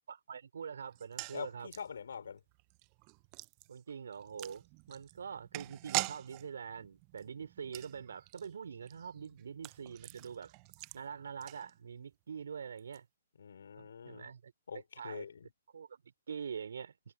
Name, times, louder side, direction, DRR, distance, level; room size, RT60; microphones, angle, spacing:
voice 1, 0.1-1.7 3.7-10.5 10.9-13.1 13.8-14.5 15.0-15.3 15.7-16.0 16.3-16.9, right 7 dB, 70° right, 3.6 m, -44 dB
sound 1, 0.9-12.1 12.4-12.5 12.8-13.0, right 29 dB, 30° right, 0.7 m, -44 dB
voice 2, 1.3-2.4 13.4-14.3 14.7-15.5, left 6 dB, 70° left, 4.8 m, -45 dB
hypercardioid pair, 140°, 0 cm